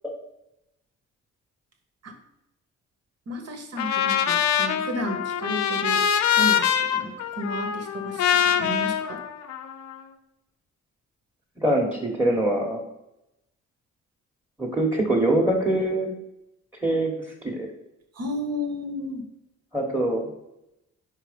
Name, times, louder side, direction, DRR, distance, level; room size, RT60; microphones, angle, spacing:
voice 1, 3.3-6.0 6.4-9.2 18.1-19.2, equal, 55° right, 5 dB, 1.2 m, -32 dB
Trumpet, 3.8-10.0, left 9 dB, 65° left, 0.6 m, -24 dB
voice 2, 11.6-12.8 14.6-16.1 16.8-17.1 17.4-17.7 19.7-20.2, right 1 dB, 5° right, -2 dB, 1.2 m, -23 dB
4.7 x 4.4 x 5.0 m, 0.90 s
cardioid pair, 90°, 30 cm